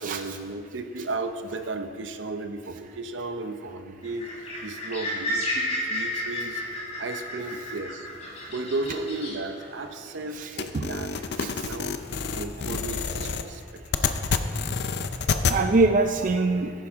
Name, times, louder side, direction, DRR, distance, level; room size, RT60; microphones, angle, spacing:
voice 1, 0.0-6.6 7.0-8.1 8.5-11.1 11.4-12.0 12.3-14.1, right 2 dB, 75° right, 8 dB, 0.8 m, -34 dB
sound 1, 4.0-11.9 12.2-13.4, left 1 dB, 35° left, 3.5 m, -33 dB
voice 2, 10.3-10.9 11.4-11.5 15.5-16.7, right 3 dB, 45° right, 6 dB, 0.4 m, -23 dB
sound 2, 10.6-15.6, left 5 dB, 60° left, 0.6 m, -28 dB
14.0 x 10.5 x 3.7 m, 2.3 s
head